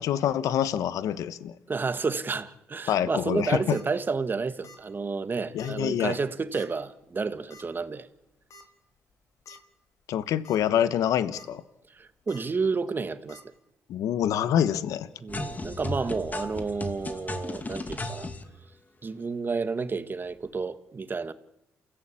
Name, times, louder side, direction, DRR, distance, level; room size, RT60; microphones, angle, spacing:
voice 1, 0.0-1.5 2.9-3.8 5.5-6.2 9.5-9.6 10.1-11.6 13.9-15.1, left 10 dB, 80° left, 1.1 m, -26 dB
voice 2, 1.7-8.1 11.9-13.4 15.2-18.3 19.0-21.3, right 4 dB, 35° right, 2.0 m, -30 dB
sound 1, 3.5-3.8 4.6-4.9 5.1-5.2 5.6-5.7 6.5-6.8 7.5-7.6 8.5-8.6 9.1-9.2 9.5-9.6 10.3-10.6 11.0-11.5 12.3-12.4 13.3-13.4, left 1 dB, 65° left, 4.0 m, -50 dB
sound 2, 15.3-18.4, left 2 dB, 30° left, 2.5 m, -35 dB
28.5 x 16.5 x 8.7 m
supercardioid pair, 65°, 6 cm